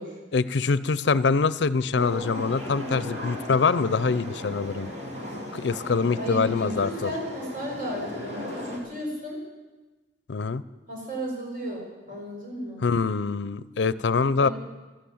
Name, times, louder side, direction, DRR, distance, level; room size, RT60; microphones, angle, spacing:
voice 1, 0.3-4.9 5.5-7.1 10.3-10.6 12.8-14.5, left 4 dB, 70° left, 16 dB, 0.5 m, -24 dB
sound 1, 2.0-8.8, left 1 dB, 70° right, 3.3 m, -36 dB
voice 2, 6.2-9.4 10.9-12.8 14.4-14.5, equal, 50° right, -1 dB, 5.5 m, -34 dB
13.0 x 12.0 x 8.6 m, 1.2 s
head